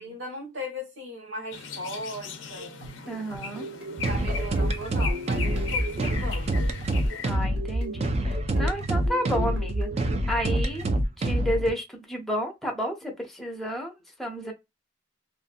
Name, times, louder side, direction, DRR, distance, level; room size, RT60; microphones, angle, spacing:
voice 1, 0.0-2.7 4.1-6.7, equal, 75° right, 1.4 m, -37 dB
sound 1, 1.5-7.3, left 5 dB, 75° left, 0.5 m, -38 dB
sound 2, 2.6-11.1, right 1 dB, 60° right, 0.9 m, -40 dB
voice 2, 3.1-3.7 7.2-10.9 11.2-13.9 14.2-14.5, equal, ahead, 0.7 m, -31 dB
sound 3, 4.0-11.7, right 1 dB, 35° right, 0.4 m, -26 dB
2.6 x 2.5 x 2.5 m
head